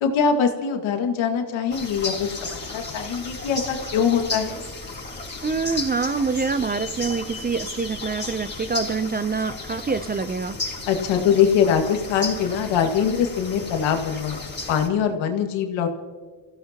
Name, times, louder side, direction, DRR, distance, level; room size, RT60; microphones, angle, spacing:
voice 1, 0.0-4.6 10.9-14.4 14.7-15.9, left 7 dB, 80° left, 4 dB, 2.1 m, -22 dB
sound 1, 1.7-14.9, left 2 dB, 25° left, 5.0 m, -34 dB
voice 2, 5.4-10.6, right 4 dB, 20° right, 13 dB, 0.6 m, -26 dB
28.5 x 16.0 x 2.9 m, 1.5 s
supercardioid pair, 75°, 47 cm